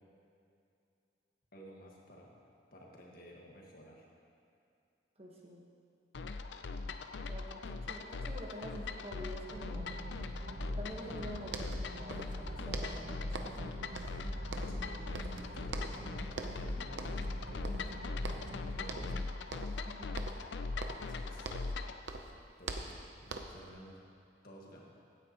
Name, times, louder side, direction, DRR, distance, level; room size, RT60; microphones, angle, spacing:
voice 1, 1.5-2.4 2.7-4.1 14.5-18.1 18.7-19.2 20.9-21.6 22.6-22.9 23.2-24.0 24.4-24.9, equal, 55° left, -2 dB, 1.7 m, -53 dB
voice 2, 5.2-5.6 7.3-9.9 10.7-13.9 19.8-20.2, equal, 35° right, -2 dB, 1.4 m, -47 dB
sound 1, 6.1-22.0, left 3 dB, 85° left, 0.5 m, -41 dB
sound 2, 9.5-19.3, right 1 dB, 60° right, 0.9 m, -44 dB
sound 3, 11.2-11.3 11.5-12.4 12.7-13.7 14.0-14.9 15.1-16.1 16.3-16.7 17.0-17.3 17.6-18.6 18.9-19.2 19.5-19.9 20.2-21.8 22.1-23.7, right 3 dB, 90° right, 0.7 m, -43 dB
16.0 x 9.3 x 3.0 m, 2.6 s
head